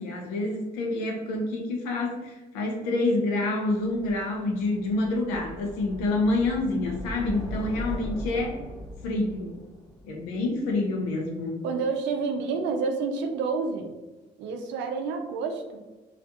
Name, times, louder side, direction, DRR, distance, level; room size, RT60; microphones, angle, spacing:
voice 1, 0.0-8.6 9.0-9.6 10.0-11.6, left 2 dB, 70° left, 1 dB, 0.6 m, -27 dB
sound 1, 3.8-10.9, equal, 15° left, 0.8 m, -39 dB
voice 2, 11.6-13.9 14.4-15.8, right 4 dB, 60° right, 5 dB, 0.5 m, -29 dB
3.2 x 2.4 x 2.6 m, 1.2 s
figure-of-eight pair, 45°, 21 cm